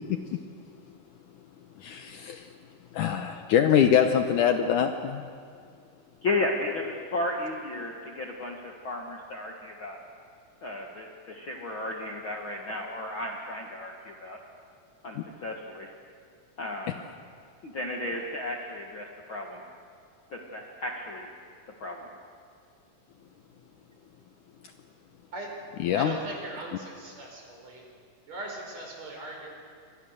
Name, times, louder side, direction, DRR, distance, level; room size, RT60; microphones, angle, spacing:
voice 1, 1.8-2.5 2.9-5.3 15.2-15.3 25.8-26.1, left 8 dB, 70° left, 6 dB, 2.1 m, -24 dB
voice 2, 6.2-10.0 10.6-14.4 15.0-15.9 16.6-17.0 17.6-19.6 20.3-21.3 21.8-22.1, left 2 dB, 45° left, 0 dB, 1.9 m, -34 dB
voice 3, 25.9-27.8 28.3-29.5, right 2 dB, 45° right, 0 dB, 5.9 m, -39 dB
28.5 x 24.5 x 6.6 m, 2.2 s
omnidirectional pair, 4.2 m